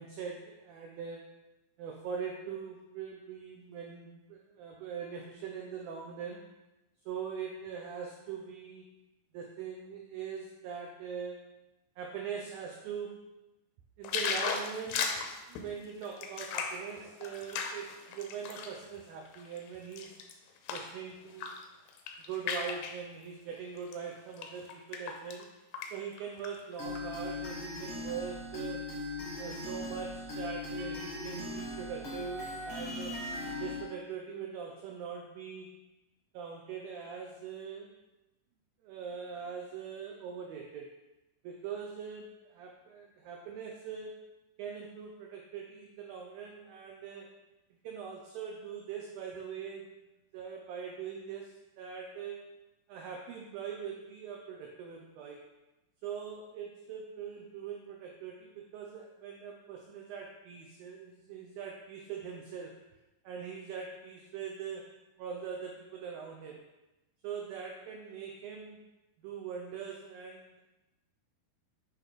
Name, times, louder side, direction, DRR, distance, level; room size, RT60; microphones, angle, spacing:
voice 1, 0.0-1.5 1.8-6.5 7.1-8.9 9.3-11.5 12.0-13.3 14.0-15.2 15.5-20.2 20.7-21.5 22.3-25.5 25.9-28.8 29.4-33.2 33.6-35.7 36.3-37.9 38.8-40.9 41.4-44.2 44.6-47.3 47.8-49.9 50.3-52.4 52.9-55.4 56.0-62.8 63.2-64.9 65.2-66.6 67.2-68.8 69.2-70.6, right 6 dB, 90° right, 1 dB, 2.0 m, -42 dB
sound 1, 14.0-18.8 19.3-20.9 21.3-21.6 21.9-23.0 23.8-23.9 24.4-25.4 25.7-25.9 26.2-27.0 27.5-27.6, left 6 dB, 85° left, 2.6 m, -36 dB
sound 2, 26.8-33.8, left 2 dB, 65° left, 1.0 m, -39 dB
sound 3, 30.8-33.2, right 3 dB, 70° right, 2.5 m, -52 dB
8.3 x 3.0 x 4.9 m, 1.0 s
omnidirectional pair, 4.9 m